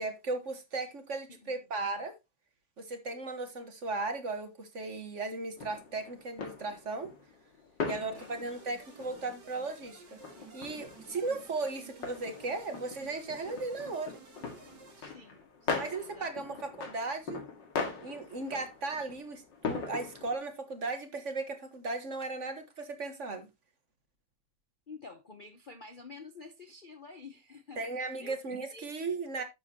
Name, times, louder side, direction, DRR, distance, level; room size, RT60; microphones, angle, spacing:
voice 1, 0.0-2.1 2.8-7.1 7.9-10.0 10.5-14.2 15.7-17.4 18.0-23.5 27.8-29.4, right 3 dB, 45° right, 1.6 m, -36 dB
sound 1, 5.6-20.4, left 5 dB, 85° left, 2.6 m, -41 dB
voice 2, 7.9-8.4 15.0-16.6 24.9-27.8 28.2-28.4 28.7-28.9 29.4-29.5, left 4 dB, 40° left, 0.7 m, -50 dB
sound 2, 8.1-15.0, right 5 dB, 70° right, 2.7 m, -54 dB
11.0 x 7.4 x 2.9 m
omnidirectional pair, 1.9 m